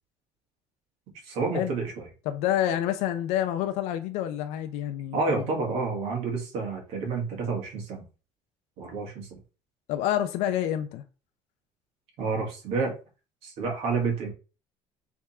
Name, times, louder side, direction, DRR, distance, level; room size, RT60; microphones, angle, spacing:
voice 1, 1.2-2.1 5.1-8.0 8.8-9.4 12.2-12.9 13.4-14.3, right 4 dB, 70° right, 1.9 m, -29 dB
voice 2, 2.3-5.4 9.9-11.0, left 11 dB, 85° left, 0.5 m, -28 dB
3.6 x 3.5 x 4.2 m
cardioid pair, 160°, 11 cm